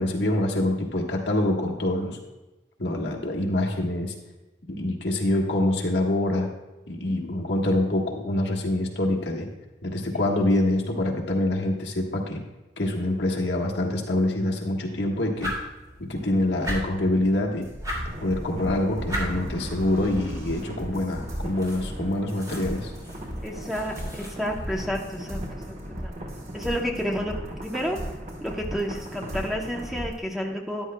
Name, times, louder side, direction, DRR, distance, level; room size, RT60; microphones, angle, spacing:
voice 1, 0.0-2.2 2.8-4.1 4.7-6.5 6.9-9.5 9.8-12.4 12.8-15.5 16.0-17.7 18.2-22.9, left 1 dB, 65° left, 0 dB, 1.5 m, -25 dB
sound 1, 15.3-24.9, equal, 20° right, 2.5 m, -38 dB
sound 2, 17.6-30.2, equal, 75° right, 3.2 m, -37 dB
sound 3, 18.1-30.1, equal, 40° right, 1.1 m, -41 dB
voice 2, 23.4-25.7 26.0-26.1 26.5-27.4 27.6-30.9, equal, ahead, 0 dB, 0.8 m, -30 dB
13.0 x 10.5 x 2.2 m, 1.1 s
head